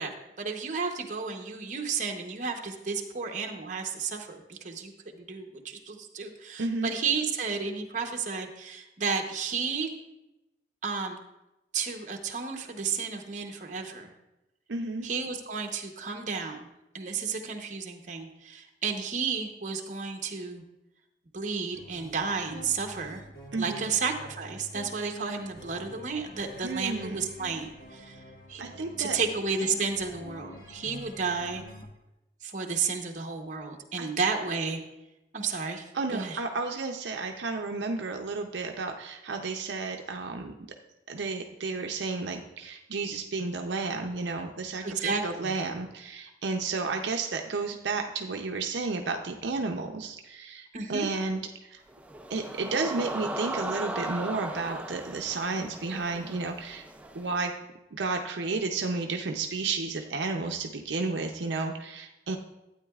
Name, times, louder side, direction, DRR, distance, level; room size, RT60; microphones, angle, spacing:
voice 1, 0.0-9.9 10.8-11.2 11.7-14.1 15.0-16.7 16.9-20.6 21.3-23.2 23.6-28.2 28.5-31.6 32.4-34.8 35.3-36.4 44.8-45.6 50.7-51.1, right 5 dB, 45° right, 4 dB, 0.9 m, -32 dB
voice 2, 6.6-6.9 14.7-15.1 23.5-23.9 26.6-27.2 28.6-29.2 34.0-34.1 35.9-40.5 41.1-51.8 52.3-56.9 57.1-57.5 57.9-62.4, right 3 dB, 75° right, 3 dB, 0.6 m, -32 dB
sound 1, 21.7-31.9, equal, 50° left, 1.1 m, -47 dB
sound 2, 51.9-57.4, right 1 dB, 5° right, 0.3 m, -37 dB
12.5 x 8.7 x 2.4 m, 0.95 s
head